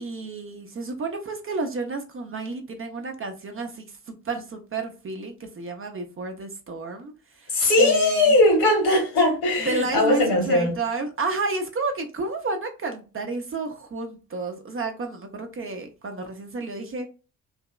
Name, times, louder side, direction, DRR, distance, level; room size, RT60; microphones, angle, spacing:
voice 1, 0.0-8.4 9.6-17.1, right 3 dB, 30° right, 0.7 m, -31 dB
voice 2, 7.5-10.7, left 2 dB, 60° left, 1.6 m, -19 dB
3.4 x 2.8 x 2.3 m
figure-of-eight pair, 40°, 43 cm